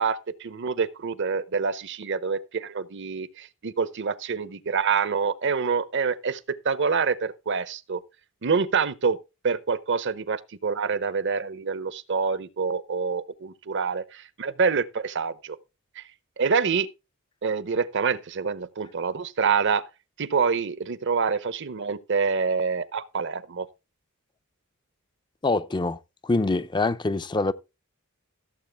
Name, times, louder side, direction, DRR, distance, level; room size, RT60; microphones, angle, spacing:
voice 1, 0.0-6.4 6.6-8.0 8.4-9.2 9.4-15.6 16.0-16.1 16.4-16.9 17.4-19.9 20.2-23.7, right 5 dB, 55° right, 0.8 m, -26 dB
voice 2, 25.4-27.5, left 3 dB, 20° left, 0.5 m, -25 dB
16.0 x 7.5 x 3.4 m
head